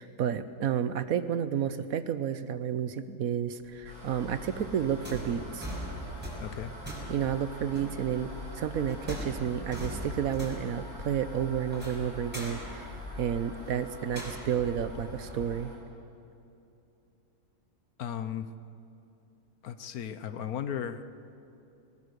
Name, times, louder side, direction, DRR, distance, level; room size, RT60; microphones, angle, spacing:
voice 1, 0.0-5.8 7.1-8.3 8.6-15.7, right 9 dB, 60° right, 13 dB, 1.0 m, -31 dB
sound 1, 3.6-15.6, left 1 dB, 5° right, 5.2 m, -41 dB
sound 2, 3.8-15.8, equal, 80° right, 6.9 m, -48 dB
voice 2, 6.4-6.7 18.0-18.5 19.6-21.0, left 9 dB, 60° left, 12 dB, 1.1 m, -35 dB
21.0 x 19.5 x 6.7 m, 2.8 s
omnidirectional pair, 1.9 m